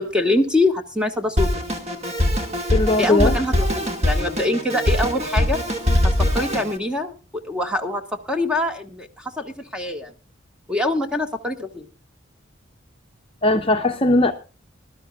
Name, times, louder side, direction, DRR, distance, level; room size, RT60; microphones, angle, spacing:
voice 1, 0.0-1.5 3.0-5.6 6.0-10.1 10.7-11.9, left 2 dB, 5° right, 1.7 m, -24 dB
Drum kit, 1.4-6.8, left 1 dB, 35° right, 2.1 m, -22 dB
voice 2, 2.7-3.4 13.4-14.3, left 2 dB, 30° left, 0.9 m, -18 dB
21.0 x 12.0 x 2.4 m
head